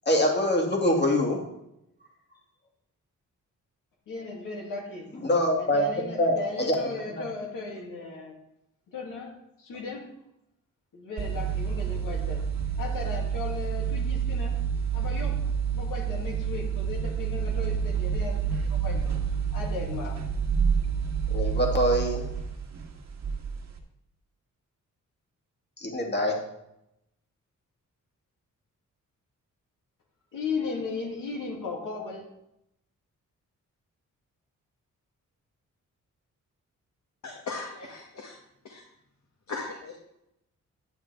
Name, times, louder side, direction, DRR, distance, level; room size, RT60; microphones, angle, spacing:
voice 1, 0.1-1.4 5.2-6.8 7.2-7.3 21.3-22.2 25.8-26.4, left 1 dB, 35° left, 0 dB, 2.2 m, -24 dB
voice 2, 4.1-5.1 5.6-8.3 8.9-10.1 10.9-12.5 12.8-14.6 14.9-15.4 15.7-19.1 19.5-20.2 30.3-32.3, left 3 dB, 85° left, -2 dB, 2.5 m, -36 dB
sound 1, 11.2-23.8, right 7 dB, 55° right, 1.7 m, -29 dB
voice 3, 37.2-38.4 38.6-38.8 39.5-39.9, left 3 dB, 60° left, -1 dB, 1.8 m, -38 dB
10.5 x 8.8 x 3.4 m, 0.82 s
cardioid pair, 85°, 32 cm